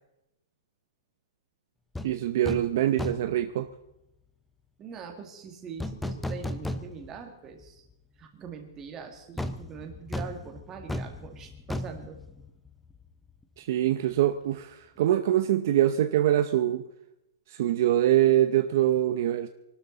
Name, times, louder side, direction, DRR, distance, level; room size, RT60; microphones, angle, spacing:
sound 1, 1.9-2.1 2.4-2.7 3.0-3.4 5.8-7.2 7.6-7.7 9.4-13.0 13.3-13.4, left 1 dB, 5° left, 0.6 m, -35 dB
voice 1, 2.0-3.7 13.6-16.8 17.5-19.5, right 12 dB, 50° right, 0.7 m, -24 dB
voice 2, 4.8-7.8 8.2-12.2, right 6 dB, 20° right, 2.0 m, -42 dB
25.0 x 12.5 x 4.0 m
hypercardioid pair, 170°, 2 cm